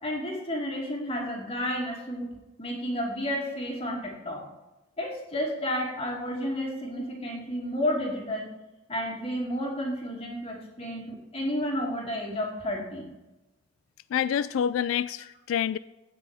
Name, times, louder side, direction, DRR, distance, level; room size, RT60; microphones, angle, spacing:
voice 1, 0.0-2.3 2.6-4.4 5.0-8.5 8.9-13.1, equal, 30° left, -2 dB, 2.4 m, -31 dB
voice 2, 14.1-15.8, left 9 dB, 90° left, 16 dB, 0.3 m, -27 dB
16.5 x 6.1 x 3.5 m, 1.0 s
head